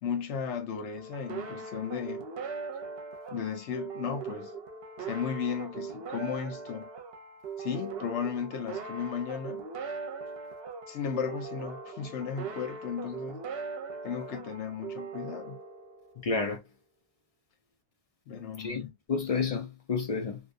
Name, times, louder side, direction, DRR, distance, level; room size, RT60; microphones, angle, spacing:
voice 1, 0.0-2.2 3.3-4.5 5.1-6.9 7.6-9.7 10.9-13.4 14.0-15.6 18.3-18.9, left 7 dB, 85° left, 0.9 m, -35 dB
sound 1, 1.0-16.3, right 4 dB, 65° right, 0.8 m, -40 dB
voice 2, 16.2-16.6 18.6-20.4, left 4 dB, 55° left, 0.4 m, -30 dB
2.6 x 2.2 x 2.4 m
omnidirectional pair, 1.1 m